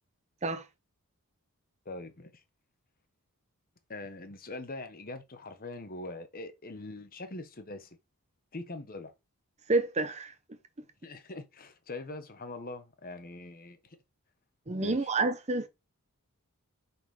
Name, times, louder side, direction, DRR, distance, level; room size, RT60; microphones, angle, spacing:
voice 1, 1.8-2.4 3.9-7.9 8.5-9.1 11.0-14.0 14.8-15.1, left 2 dB, 40° left, 1.0 m, -42 dB
voice 2, 9.7-10.6 14.7-15.7, right 3 dB, 30° right, 0.8 m, -29 dB
7.3 x 4.3 x 4.8 m
head